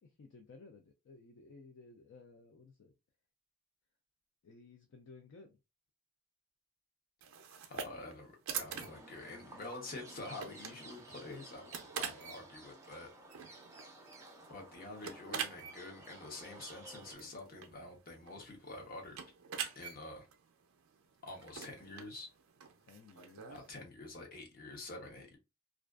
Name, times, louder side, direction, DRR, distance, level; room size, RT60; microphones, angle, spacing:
voice 1, 0.0-2.9 4.4-5.6 22.8-23.7, left 3 dB, 55° left, 0.3 m, -57 dB
sound 1, 7.2-23.7, right 7 dB, 70° right, 0.4 m, -46 dB
voice 2, 7.7-13.1 14.5-19.2 19.7-20.3 21.2-22.3 23.5-25.4, left 2 dB, 40° left, 0.7 m, -47 dB
sound 2, 8.7-17.1, right 2 dB, 15° right, 0.4 m, -54 dB
2.4 x 2.2 x 2.3 m
head